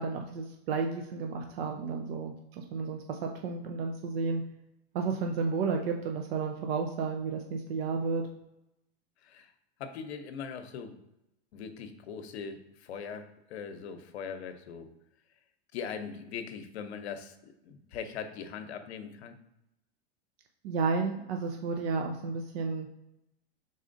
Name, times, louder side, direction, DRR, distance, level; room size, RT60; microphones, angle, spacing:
voice 1, 0.0-4.4 4.9-8.2 20.6-22.9, right 4 dB, 70° right, 3 dB, 0.7 m, -32 dB
voice 2, 9.2-9.5 9.8-11.0 11.5-14.9 15.7-19.4, left 6 dB, 85° left, 9 dB, 0.7 m, -41 dB
4.8 x 4.0 x 2.6 m, 0.87 s
supercardioid pair, 130°, 32 cm